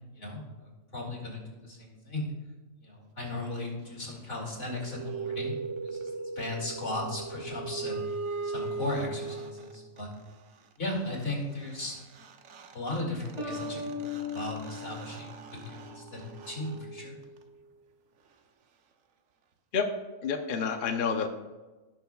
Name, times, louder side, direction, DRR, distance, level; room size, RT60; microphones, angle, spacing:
voice 1, 0.1-2.2 2.8-5.5 5.8-8.0 8.4-10.1 10.8-12.0 12.7-17.2, left 2 dB, 65° left, -2 dB, 2.6 m, -37 dB
sound 1, 4.6-10.0 11.9-12.0 12.2-17.7, right 4 dB, 85° right, 1.1 m, -39 dB
sound 2, 13.4-16.0, left 4 dB, 30° right, 2.7 m, -38 dB
voice 2, 20.2-21.3, left 6 dB, 50° left, 5 dB, 0.8 m, -28 dB
17.0 x 6.1 x 2.3 m, 1.2 s
omnidirectional pair, 1.3 m